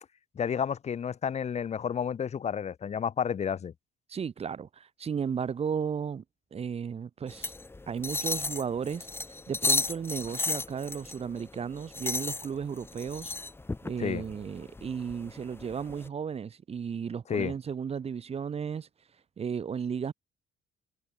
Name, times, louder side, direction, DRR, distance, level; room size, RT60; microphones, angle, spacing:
voice 1, 0.4-3.7 14.0-14.2 17.3-17.5, left 7 dB, 40° left, 2.2 m, -31 dB
voice 2, 4.1-6.2 6.5-7.5 7.9-13.3 13.8-18.9 19.4-20.1, right 7 dB, 35° right, 2.2 m, -34 dB
sound 1, 7.3-16.1, left 2 dB, 15° left, 1.7 m, -34 dB
cardioid pair, 110°, 17 cm